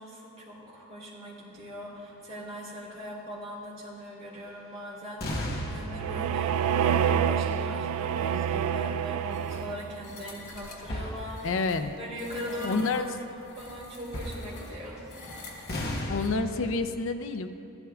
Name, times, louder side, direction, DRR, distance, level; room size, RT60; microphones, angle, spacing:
voice 1, 0.0-11.6 12.0-15.2 15.5-15.7, equal, 30° right, -7 dB, 2.9 m, -40 dB
sound 1, 5.2-9.0 9.3-9.6 10.8-11.8 12.3-12.4 14.0-15.1 15.7-16.7, left 1 dB, 45° left, 1.0 m, -36 dB
sound 2, 5.5-10.1, right 8 dB, 75° right, 0.3 m, -28 dB
sound 3, 9.3-16.3, left 2 dB, 90° left, 1.7 m, -47 dB
voice 2, 11.4-11.9 12.5-13.0 16.1-17.5, left 3 dB, 60° left, 9 dB, 0.5 m, -28 dB
15.5 x 11.5 x 2.4 m, 2.6 s
head